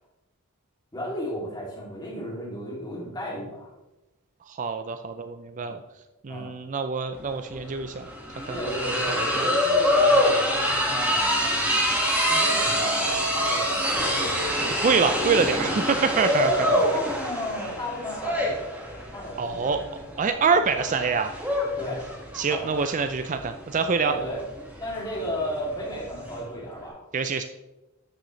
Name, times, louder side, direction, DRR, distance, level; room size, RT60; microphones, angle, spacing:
voice 1, 0.9-3.7 5.6-5.8 6.3-6.5 8.5-11.7 12.2-14.1 16.7-18.4 19.1-19.7 21.8-22.0 22.5-22.8 24.0-24.4 24.8-27.0, equal, 20° left, -4 dB, 2.5 m, -34 dB
voice 2, 4.5-5.8 6.2-8.0 8.5-8.6 9.1-9.5 14.7-16.7 19.4-19.8 20.2-21.4 22.3-24.1 27.1-27.4, right 5 dB, 35° right, 8 dB, 0.4 m, -25 dB
sound 1, 7.2-7.3 7.5-26.4, equal, 5° right, 1.7 m, -25 dB
13.0 x 6.5 x 3.1 m, 1.0 s
head